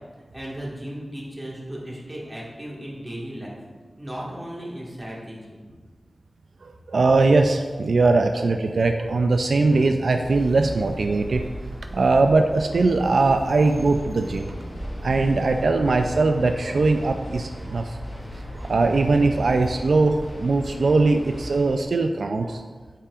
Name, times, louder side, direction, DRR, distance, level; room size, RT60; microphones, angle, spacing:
voice 1, 0.2-3.6 4.0-5.6, equal, 20° right, -5 dB, 1.6 m, -36 dB
voice 2, 6.6-11.4 11.9-14.5 15.0-18.0 18.5-22.6, right 3 dB, 80° right, 5 dB, 0.3 m, -21 dB
sound 1, 10.2-21.6, equal, 5° left, 1.7 m, -37 dB
sound 2, 13.1-21.8, equal, 75° left, 1.9 m, -44 dB
8.5 x 5.6 x 2.4 m, 1.4 s
wide cardioid pair, 90°, 0 cm